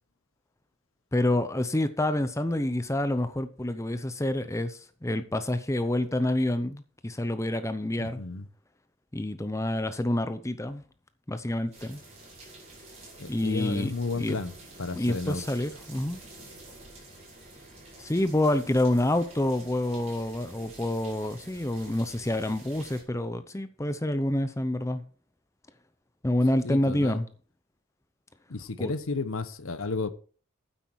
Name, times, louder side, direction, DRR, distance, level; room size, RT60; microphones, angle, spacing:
voice 1, 1.1-8.2 9.1-10.8 11.3-12.0 13.3-14.4 14.9-16.2 18.0-25.0 26.2-27.3 28.8-28.9, left 1 dB, 15° left, 0.7 m, -28 dB
voice 2, 8.0-8.5 13.2-14.5 14.8-15.4 26.6-27.2 28.5-30.1, left 3 dB, 70° left, 1.0 m, -32 dB
sound 1, 11.7-23.0, right 2 dB, 30° right, 5.3 m, -49 dB
9.4 x 8.4 x 4.7 m
head